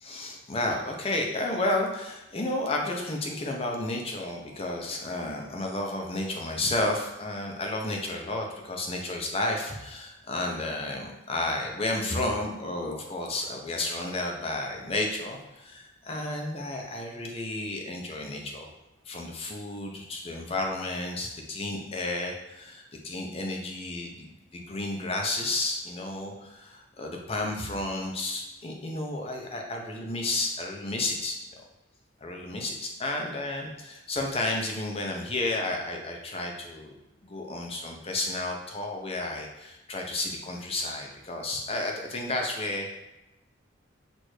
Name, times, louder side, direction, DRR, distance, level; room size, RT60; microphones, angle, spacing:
voice 1, 0.0-18.7 19.1-24.3 24.5-31.4 32.2-37.0 37.2-43.0, left 2 dB, 30° left, 1 dB, 0.6 m, -32 dB
6.2 x 2.6 x 3.2 m, 0.97 s
head